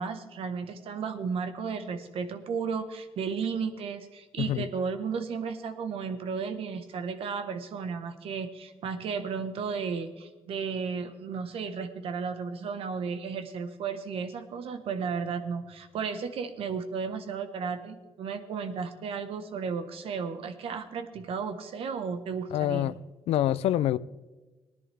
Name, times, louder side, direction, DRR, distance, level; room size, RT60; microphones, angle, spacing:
voice 1, 0.0-22.9, right 5 dB, 75° right, 1.3 m, -34 dB
voice 2, 22.5-23.0 23.3-24.0, left 12 dB, 85° left, 0.4 m, -26 dB
19.0 x 10.5 x 3.5 m
cardioid pair, 90°, 10 cm